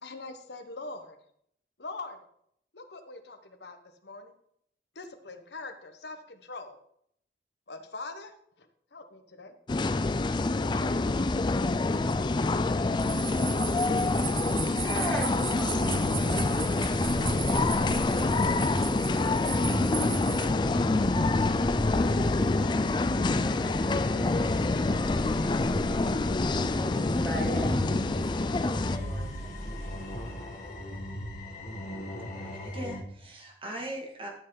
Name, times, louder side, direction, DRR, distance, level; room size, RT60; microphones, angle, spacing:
voice 1, 0.0-1.2 1.8-2.2 2.7-4.3 4.9-6.8 7.7-9.6 10.5-10.9, left 3 dB, 75° left, 7 dB, 1.2 m, -43 dB
sound 1, 9.7-29.0, left 3 dB, 25° left, 0.4 m, -26 dB
sound 2, 13.0-20.5, right 9 dB, 55° right, 1.0 m, -38 dB
sound 3, 14.1-33.0, equal, 45° left, 2.0 m, -37 dB
voice 2, 14.8-15.9 16.3-19.0 19.4-22.8 23.3-26.0 26.6-29.6, right 1 dB, 10° left, -6 dB, 3.3 m, -41 dB
voice 3, 32.3-34.3, right 1 dB, 30° right, 0 dB, 2.2 m, -40 dB
12.0 x 6.6 x 4.0 m, 0.69 s
head